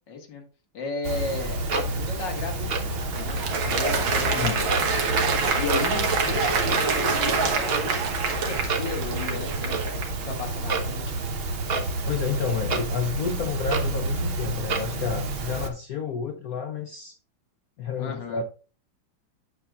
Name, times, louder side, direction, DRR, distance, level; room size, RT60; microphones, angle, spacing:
voice 1, 0.1-0.4 0.7-3.5 3.7-4.8 5.6-10.0 10.3-11.3 11.7-11.9 18.0-18.4, left 4 dB, 60° left, 2.3 m, -35 dB
Clock, 1.0-15.7, right 2 dB, 55° right, 0.6 m, -29 dB
Applause, 2.6-10.2, right 4 dB, 70° right, 2.0 m, -26 dB
voice 2, 4.3-4.9 12.1-17.2 17.8-18.4, left 7 dB, 75° left, 0.8 m, -30 dB
9.6 x 6.8 x 2.4 m
omnidirectional pair, 2.3 m